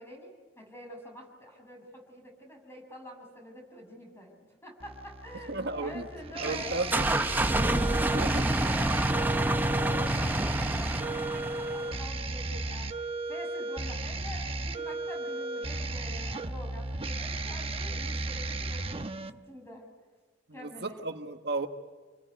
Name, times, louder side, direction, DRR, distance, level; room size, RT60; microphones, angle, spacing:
voice 1, 0.0-4.4 4.6-12.9 13.3-19.1 19.5-19.9 20.5-21.0, equal, 15° left, 1 dB, 7.2 m, -46 dB
sound 1, 4.8-19.3, right 2 dB, 30° right, 1.0 m, -35 dB
voice 2, 5.5-6.1 6.4-7.1 8.1-8.5 20.5-21.7, right 2 dB, 65° right, 5 dB, 1.5 m, -34 dB
sound 2, 6.4-12.0, right 1 dB, 10° right, 0.7 m, -28 dB
28.5 x 21.0 x 9.5 m, 1.4 s
head